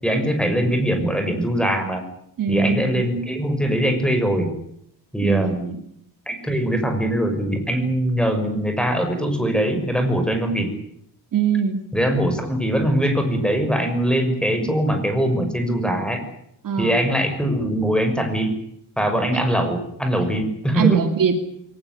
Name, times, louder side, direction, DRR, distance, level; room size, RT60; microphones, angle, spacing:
voice 1, 0.0-2.0 2.5-4.5 5.1-5.7 6.3-10.7 11.9-16.2 16.8-18.5 19.0-21.0, right 1 dB, ahead, 6 dB, 6.2 m, -22 dB
voice 2, 2.4-3.0 5.2-5.7 11.3-11.8 16.6-17.0 20.7-21.4, right 6 dB, 50° right, 6 dB, 2.7 m, -21 dB
23.0 x 19.0 x 9.8 m, 0.72 s
cardioid pair, 135°, 42 cm